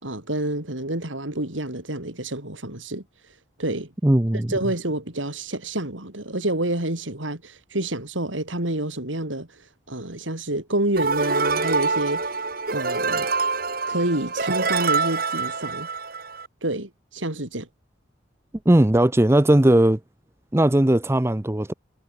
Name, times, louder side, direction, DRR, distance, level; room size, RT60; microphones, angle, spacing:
voice 1, 0.0-3.0 3.6-3.9 4.5-9.5 9.9-12.3 12.7-13.3 13.9-15.9 16.6-17.7, right 1 dB, 90° right, 5.4 m, -28 dB
voice 2, 4.0-4.5 18.7-20.0 20.5-21.7, right 1 dB, 15° right, 0.6 m, -18 dB
sound 1, 11.0-16.5, right 4 dB, 50° right, 4.6 m, -25 dB
head